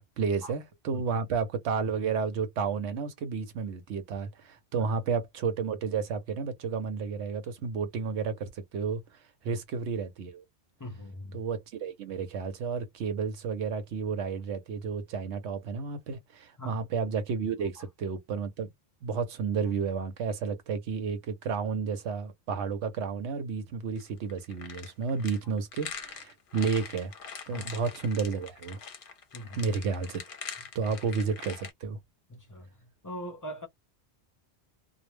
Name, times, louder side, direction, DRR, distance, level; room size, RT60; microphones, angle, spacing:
voice 1, 0.0-10.4 11.3-18.7 19.0-27.1 27.5-28.8 29.5-30.2 30.7-32.0, right 5 dB, 85° right, 0.9 m, -32 dB
voice 2, 10.8-11.4 16.6-16.8 27.5-27.7 29.3-29.6 32.3-32.7 33.0-33.7, equal, 25° left, 0.4 m, -41 dB
sound 1, 24.0-31.7, left 6 dB, 55° left, 0.8 m, -43 dB
2.2 x 2.0 x 3.0 m
omnidirectional pair, 1.1 m